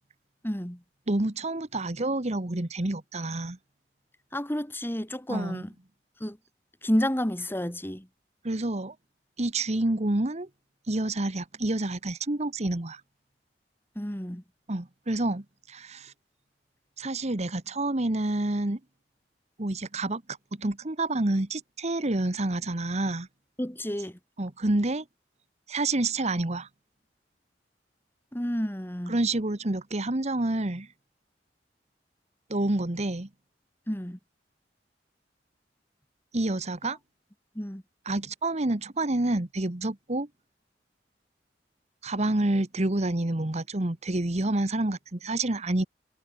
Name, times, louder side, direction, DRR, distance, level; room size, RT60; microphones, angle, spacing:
voice 1, 0.4-0.8 4.3-5.7 6.2-6.4 6.8-8.1 14.0-14.4 23.6-24.2 28.3-29.2 33.9-34.2 37.5-37.8, equal, 15° left, 2.7 m, -30 dB
voice 2, 1.1-3.6 5.3-5.7 8.4-8.9 9.4-10.5 10.9-13.0 14.7-16.1 17.0-18.8 19.6-20.2 20.5-23.3 24.4-25.0 25.7-26.7 29.1-30.9 32.5-33.3 36.3-37.0 38.0-40.3 42.0-45.9, right 2 dB, 40° right, 1.4 m, -28 dB
head